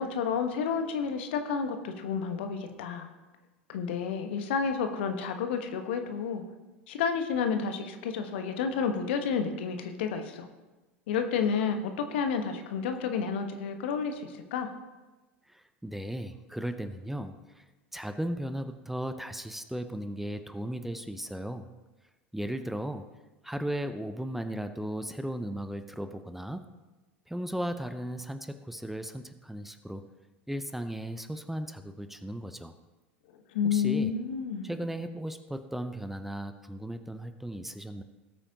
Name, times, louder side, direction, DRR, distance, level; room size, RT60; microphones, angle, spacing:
voice 1, 0.0-3.1 3.7-6.4 6.9-10.5 11.1-14.7 33.5-34.7, left 6 dB, 60° left, 6 dB, 1.2 m, -30 dB
voice 2, 15.5-17.6 17.9-21.7 22.3-23.1 23.4-26.6 27.3-30.0 30.5-32.7 33.6-34.1 34.6-38.0, right 1 dB, 5° right, 8 dB, 0.7 m, -36 dB
18.5 x 8.5 x 2.9 m, 1.1 s
figure-of-eight pair, 75°, 7 cm